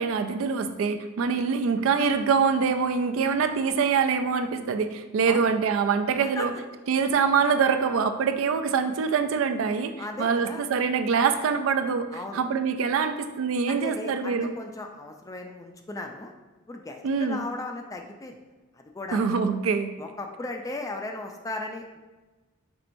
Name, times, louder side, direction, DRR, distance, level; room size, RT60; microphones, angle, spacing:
voice 1, 0.0-6.5 6.9-9.9 10.2-14.5 17.0-17.4 19.1-19.9, right 5 dB, 65° right, 9 dB, 0.3 m, -24 dB
voice 2, 10.0-10.7 12.1-12.4 13.7-16.3 16.7-18.4 18.9-19.2 20.0-22.0, left 2 dB, 15° left, 3 dB, 0.3 m, -36 dB
4.5 x 4.2 x 2.6 m, 1.2 s
head